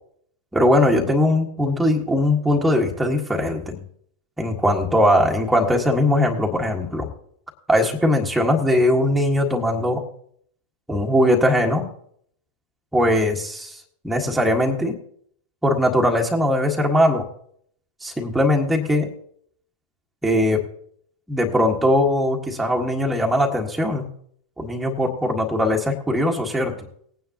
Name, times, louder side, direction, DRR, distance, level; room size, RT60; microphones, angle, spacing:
voice 1, 0.5-3.8 4.4-7.1 7.7-10.0 10.9-11.9 12.9-13.8 14.0-15.0 15.6-17.2 18.0-19.1 20.2-20.6 21.3-24.1 24.6-26.7, left 1 dB, 5° right, 0 dB, 1.7 m, -20 dB
19.5 x 9.4 x 2.9 m, 0.65 s
figure-of-eight pair, 90°, 0 cm